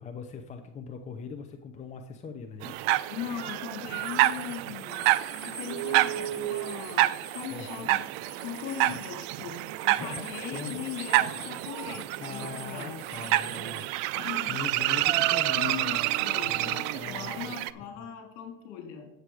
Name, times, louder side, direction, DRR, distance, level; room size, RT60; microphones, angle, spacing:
voice 1, 0.0-2.9 7.5-7.9 8.9-9.0 10.0-10.9 12.2-13.9 14.5-18.1, left 5 dB, 20° left, 5 dB, 0.8 m, -41 dB
sound 1, 2.6-17.7, right 16 dB, 50° right, 0.5 m, -29 dB
voice 2, 3.1-5.1 5.4-8.1 8.4-13.0 14.1-14.6 15.5-19.1, left 9 dB, 55° left, 3 dB, 3.3 m, -39 dB
sound 2, 3.9-13.8, right 2 dB, 10° right, 3.9 m, -46 dB
8.2 x 7.9 x 4.9 m, 0.81 s
supercardioid pair, 115°, 39 cm